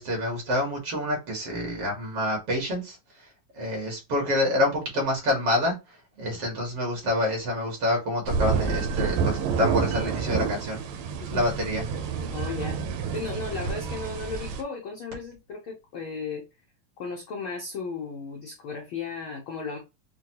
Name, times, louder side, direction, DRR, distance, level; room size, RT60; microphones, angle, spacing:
voice 1, 0.0-3.0 3.5-5.8 6.2-10.8 11.3-11.9, left 1 dB, 50° right, 2.2 m, -27 dB
sound 1, 8.3-14.6, right 6 dB, 90° right, 2.5 m, -28 dB
voice 2, 11.2-11.5 12.3-12.8 13.1-16.4 17.0-19.8, left 4 dB, 85° left, 1.1 m, -35 dB
6.4 x 2.3 x 3.0 m
omnidirectional pair, 3.7 m